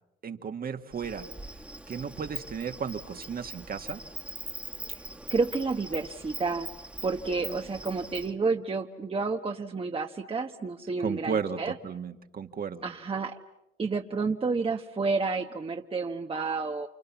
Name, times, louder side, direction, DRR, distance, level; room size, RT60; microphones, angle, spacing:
voice 1, 0.2-1.3 1.9-4.0 7.4-7.6 11.0-12.8, right 6 dB, 50° right, 7 dB, 1.7 m, -34 dB
Insect, 0.9-8.3, right 1 dB, 5° right, 1.7 m, -42 dB
voice 2, 5.3-6.7 7.0-11.7 12.8-13.4 13.8-16.9, right 4 dB, 30° right, 4 dB, 1.1 m, -30 dB
29.5 x 27.5 x 7.2 m, 0.90 s
cardioid pair, 90°, 20 cm